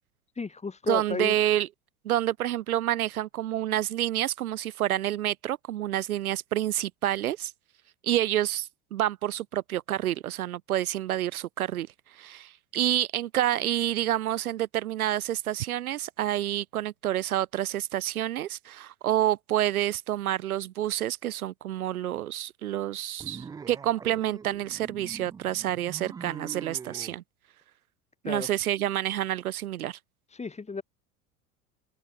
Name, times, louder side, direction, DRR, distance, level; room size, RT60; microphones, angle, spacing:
voice 1, 0.3-1.4 28.2-28.5 30.3-30.8, left 4 dB, 15° left, 2.5 m, -33 dB
voice 2, 0.9-1.7 2.0-7.5 8.0-27.2 28.2-30.0, right 12 dB, 70° right, 1.1 m, -28 dB
sound 1, 23.2-27.2, right 6 dB, 10° right, 0.4 m, -43 dB
figure-of-eight pair, 75°, 44 cm